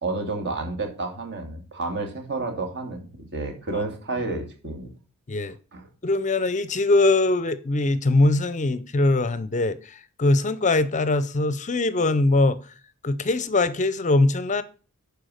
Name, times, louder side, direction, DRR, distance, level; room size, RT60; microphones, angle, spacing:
voice 1, 0.0-4.9 5.7-5.9, right 3 dB, 50° right, 2.6 m, -30 dB
voice 2, 6.0-12.6 13.0-14.6, left 2 dB, 35° left, 0.6 m, -22 dB
11.5 x 4.7 x 6.4 m
head